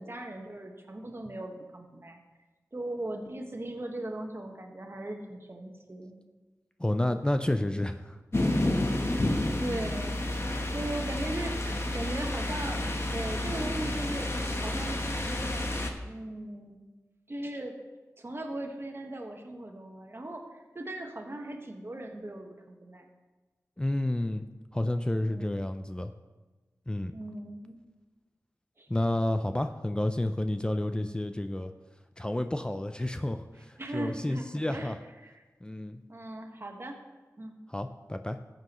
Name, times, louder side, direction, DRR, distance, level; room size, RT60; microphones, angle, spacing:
voice 1, 0.0-2.2 2.7-6.2 9.6-10.3 10.7-12.8 13.1-14.3 14.6-15.6 16.0-16.8 17.3-17.7 18.2-23.0 25.3-25.6 27.1-27.8 28.8-28.9 33.8-34.9 35.2-35.3 36.1-37.0 37.4-37.5, right 1 dB, 40° right, 3 dB, 1.4 m, -38 dB
voice 2, 6.8-8.2 8.7-8.8 23.8-24.5 24.7-26.1 26.9-27.1 28.9-31.7 32.2-35.0 35.6-36.0 37.7-38.4, left 1 dB, 15° left, 8 dB, 0.5 m, -30 dB
sound 1, 8.3-15.9, left 1 dB, 45° left, 1.1 m, -30 dB
14.0 x 7.7 x 3.1 m, 1.2 s
cardioid pair, 45°, 6 cm